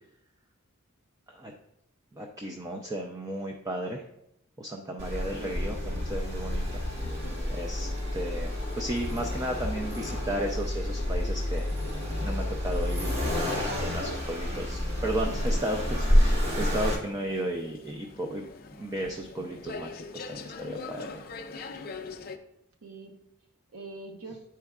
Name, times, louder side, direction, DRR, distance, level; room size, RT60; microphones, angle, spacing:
voice 1, 2.2-4.0 4.6-11.7 12.2-18.4 18.8-21.2, right 1 dB, 15° right, 1 dB, 0.4 m, -34 dB
Accelerating revving vroom, 5.0-16.9, left 1 dB, 60° right, 1.7 m, -29 dB
voice 2, 5.4-5.8 13.7-14.2 15.3-15.4 15.9-16.0 22.8-23.1 23.7-24.4, right 1 dB, 80° right, 1 dB, 1.1 m, -41 dB
sound 1, 7.0-22.4, left 4 dB, 45° left, 0.4 m, -46 dB
9.7 x 4.5 x 2.3 m, 0.80 s
head